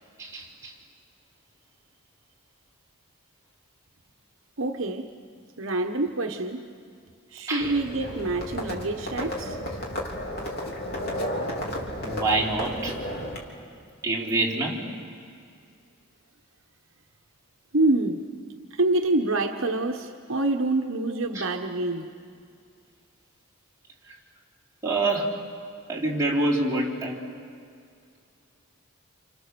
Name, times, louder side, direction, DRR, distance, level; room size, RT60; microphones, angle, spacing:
voice 1, 0.2-0.7 7.5-7.8 12.0-13.0 14.0-14.9 21.3-21.4 24.1-24.2 24.8-25.4 25.9-27.2, right 2 dB, 15° right, 4.1 m, -26 dB
voice 2, 4.6-5.1 5.6-6.7 7.3-9.6 17.7-18.3 18.7-22.1, right 2 dB, 65° right, 1.1 m, -26 dB
Livestock farm animals working animals, 7.6-13.4, equal, 45° left, 3.4 m, -33 dB
30.0 x 28.0 x 6.9 m
head